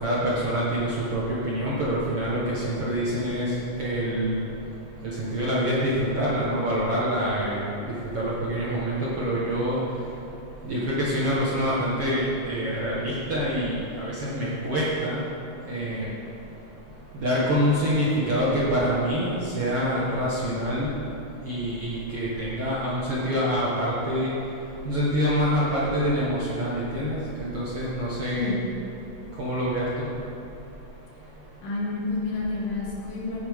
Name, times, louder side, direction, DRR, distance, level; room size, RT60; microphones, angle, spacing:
voice 1, 0.0-3.5 3.8-4.5 5.2-7.7 8.1-9.8 10.6-15.2 15.7-16.1 17.1-20.9 21.4-24.3 24.9-28.5 29.4-29.9, equal, 50° right, -7 dB, 1.8 m, -26 dB
voice 2, 31.6-33.5, left 3 dB, 65° left, -4 dB, 3.4 m, -29 dB
16.0 x 9.4 x 3.7 m, 2.8 s
omnidirectional pair, 4.4 m